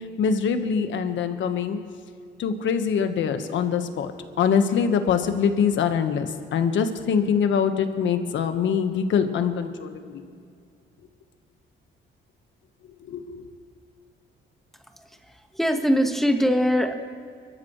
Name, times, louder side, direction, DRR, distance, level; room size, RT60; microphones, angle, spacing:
voice 1, 0.2-1.8 2.4-4.1 4.4-10.2 13.1-13.4, left 7 dB, 70° left, 8 dB, 1.3 m, -24 dB
voice 2, 14.9-16.9, equal, ahead, 5 dB, 1.4 m, -23 dB
24.0 x 13.5 x 3.2 m, 2.3 s
cardioid pair, 90°, 20 cm